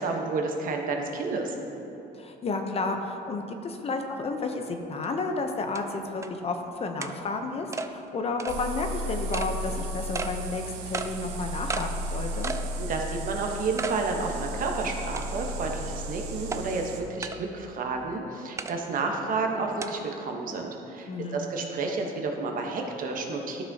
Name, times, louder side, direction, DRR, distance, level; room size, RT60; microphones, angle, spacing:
voice 1, 0.0-1.5 12.8-23.6, right 3 dB, 55° right, 2 dB, 1.1 m, -31 dB
voice 2, 2.2-12.5 21.1-21.4, left 3 dB, 35° left, 5 dB, 0.7 m, -32 dB
sound 1, 5.0-5.1 5.7-5.8 6.2-6.3 7.0-7.1 7.7-7.9 8.4-8.6 9.3-9.5 10.1-10.3 10.9-11.1 11.7-11.9 12.4-12.7 13.1-13.2 13.8-14.0 14.4-14.5 15.2-15.5 16.5-16.6 17.2-17.4 18.6-18.7 19.8-19.9, right 4 dB, 15° right, 0.3 m, -33 dB
sound 2, 8.5-17.0, right 1 dB, 85° right, 0.8 m, -34 dB
12.5 x 6.0 x 2.8 m, 3.0 s
cardioid pair, 110°, 17 cm